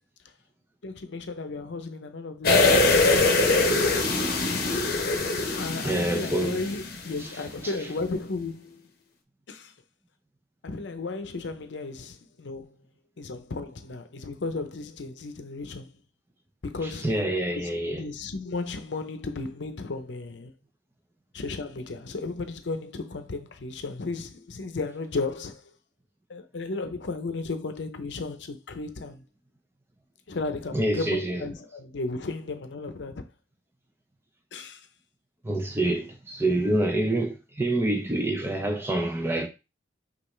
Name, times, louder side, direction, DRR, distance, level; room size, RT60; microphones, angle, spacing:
voice 1, 0.8-2.9 5.6-8.8 9.5-9.7 10.6-12.8 13.2-16.0 16.6-20.5 21.3-25.7 26.3-29.2 30.3-33.3 34.5-34.9, left 3 dB, 85° left, 0.6 m, -34 dB
sound 1, 2.4-7.3 7.6-7.7, left 3 dB, 55° left, 0.8 m, -23 dB
voice 2, 5.8-6.6 17.0-18.0 30.7-31.5 35.4-39.5, right 1 dB, 15° right, 0.6 m, -26 dB
5.5 x 2.5 x 3.2 m
head